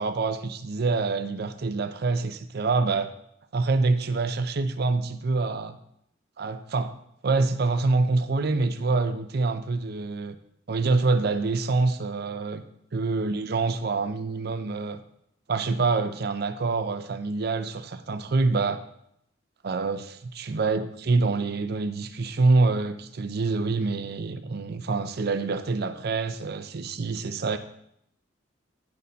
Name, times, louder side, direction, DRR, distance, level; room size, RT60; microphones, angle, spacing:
voice 1, 0.0-3.1 3.5-5.8 6.4-6.9 7.2-10.4 10.7-12.6 12.9-15.0 15.5-18.8 19.6-27.6, right 3 dB, 50° right, 10 dB, 0.5 m, -26 dB
9.7 x 4.0 x 5.5 m, 0.74 s
head